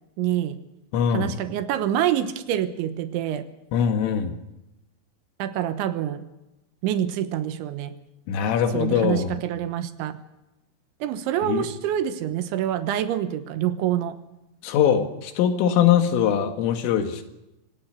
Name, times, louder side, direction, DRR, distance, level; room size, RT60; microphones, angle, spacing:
voice 1, 0.2-0.6 1.1-3.5 5.4-6.3 6.8-7.9 8.7-10.2 11.0-14.2, right 11 dB, 75° right, 10 dB, 3.4 m, -26 dB
voice 2, 0.9-1.3 3.7-4.3 8.3-9.4 11.5-11.7 14.6-17.2, left 8 dB, 85° left, 6 dB, 4.5 m, -22 dB
25.0 x 17.5 x 6.5 m, 0.95 s
omnidirectional pair, 5.6 m